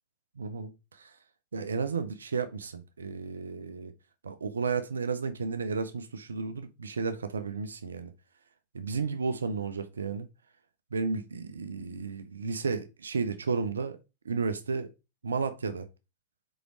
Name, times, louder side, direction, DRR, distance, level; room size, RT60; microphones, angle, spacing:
voice 1, 0.4-1.1 1.5-3.9 4.2-8.1 8.7-10.3 10.9-14.0 14.3-14.9 15.2-15.9, right 5 dB, 70° right, 0.6 m, -33 dB
5.0 x 4.8 x 4.5 m
figure-of-eight pair, 90°, 0 cm